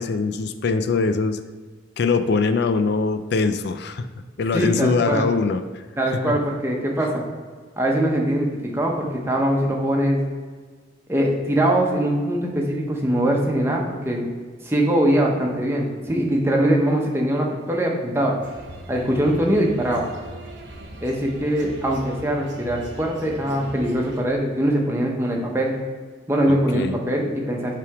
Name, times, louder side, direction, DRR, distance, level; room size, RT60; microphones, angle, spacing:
voice 1, 0.0-1.4 2.0-4.1 4.4-5.6 6.2-6.3 26.5-27.0, left 4 dB, 60° left, 10 dB, 0.4 m, -22 dB
voice 2, 4.5-5.3 6.0-7.2 7.8-10.2 11.1-14.3 14.6-18.3 18.9-20.1 21.0-25.7 26.3-27.8, right 1 dB, 15° right, -1 dB, 0.9 m, -22 dB
sound 1, 18.4-24.2, right 1 dB, 70° right, 0.9 m, -40 dB
7.5 x 3.4 x 4.8 m, 1.5 s
head